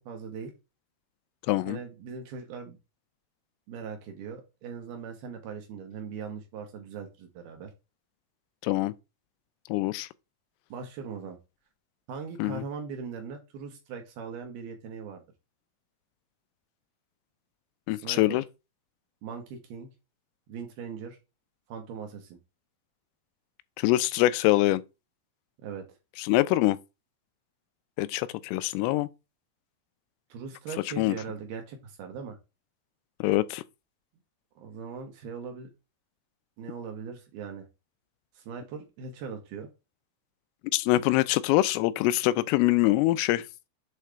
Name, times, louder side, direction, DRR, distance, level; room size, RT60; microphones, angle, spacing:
voice 1, 0.1-0.5 1.6-2.8 3.7-7.7 10.7-11.4 12.1-15.2 17.9-18.4 19.2-19.9 20.5-21.2 21.7-22.4 25.6-25.9 30.3-32.4 34.6-35.7 36.6-37.7 38.3-39.7, right 6 dB, 75° right, 2.3 m, -40 dB
voice 2, 1.5-1.8 8.6-8.9 9.7-10.1 12.4-12.6 17.9-18.4 23.8-24.8 26.2-26.8 28.0-29.1 31.0-31.2 33.2-33.6 40.7-43.5, left 17 dB, 85° left, 3.2 m, -24 dB
7.8 x 3.3 x 4.8 m
omnidirectional pair, 5.8 m